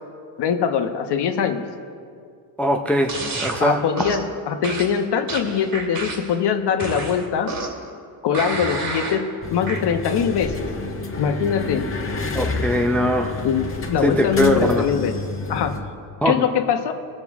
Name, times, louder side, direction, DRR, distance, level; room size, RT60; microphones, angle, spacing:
voice 1, 0.4-1.6 3.6-7.5 8.2-10.6 11.2-11.9 13.4-15.1 15.5-15.8 16.2-16.9, left 7 dB, 55° left, 6 dB, 1.2 m, -22 dB
voice 2, 2.6-3.8 12.3-13.4 14.0-14.9 16.2-16.4, equal, 5° left, 4 dB, 0.6 m, -21 dB
sound 1, 3.1-3.6 4.0-4.3 4.6-6.4 6.8-7.9 8.3-9.2 9.7-9.8, right 3 dB, 45° right, 2.5 m, -30 dB
sound 2, 9.4-15.8, left 3 dB, 25° left, 1.6 m, -29 dB
19.5 x 7.8 x 3.6 m, 2.3 s
cardioid pair, 100°, 49 cm